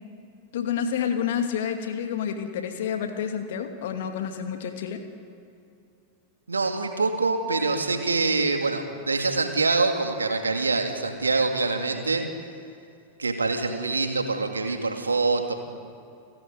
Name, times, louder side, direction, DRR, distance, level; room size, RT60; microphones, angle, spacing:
voice 1, 0.5-5.0, left 8 dB, 55° left, 5 dB, 2.5 m, -29 dB
voice 2, 6.5-12.3 13.2-15.5, right 3 dB, 75° right, 4 dB, 2.6 m, -25 dB
30.0 x 14.0 x 9.4 m, 2.6 s
figure-of-eight pair, 90°, 0 cm